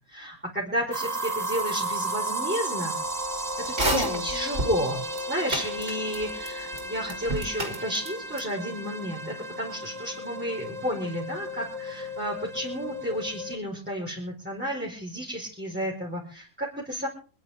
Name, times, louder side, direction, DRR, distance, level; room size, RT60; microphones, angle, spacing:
voice 1, 0.1-2.9 3.8-17.1, equal, 5° right, -5 dB, 4.6 m, -32 dB
sound 1, 0.9-13.6, right 1 dB, 25° right, 1.9 m, -34 dB
sound 2, 3.7-4.7 5.1-5.2 5.5-6.5 6.7-6.8 7.1-8.1 8.4-8.5, right 1 dB, 50° right, 3.6 m, -28 dB
26.5 x 11.5 x 3.7 m, 0.37 s
omnidirectional pair, 1.5 m